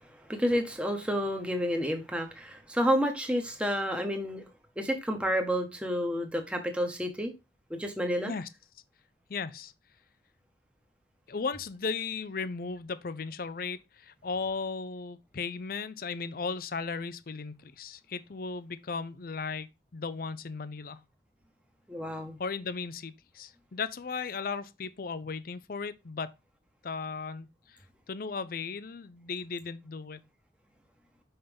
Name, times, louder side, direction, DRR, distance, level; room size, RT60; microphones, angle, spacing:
voice 1, 0.0-4.4 4.8-7.3 7.7-8.3 21.9-22.4, equal, 5° right, 1.2 m, -30 dB
voice 2, 9.3-9.7 11.3-19.7 19.9-21.0 22.4-26.3 26.8-27.8 28.1-30.2, left 4 dB, 55° left, 0.6 m, -36 dB
5.7 x 5.5 x 3.4 m
head